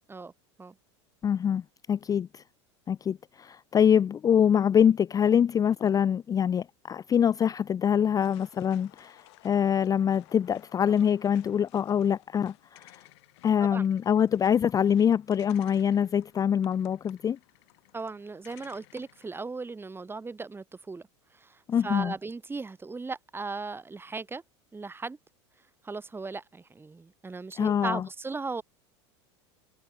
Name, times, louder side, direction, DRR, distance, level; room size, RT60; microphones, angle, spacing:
voice 1, 1.2-1.6 1.9-2.4 2.9-13.0 13.4-17.4 21.7-22.1 27.6-28.0, left 8 dB, 25° left, 0.5 m, -24 dB
sound 1, 8.2-19.3, left 22 dB, 65° left, 7.6 m, -57 dB
voice 2, 17.9-21.0 21.3-24.4 24.7-25.2 25.8-28.6, right 4 dB, 15° right, 2.8 m, -37 dB
hypercardioid pair, 90°, 15 cm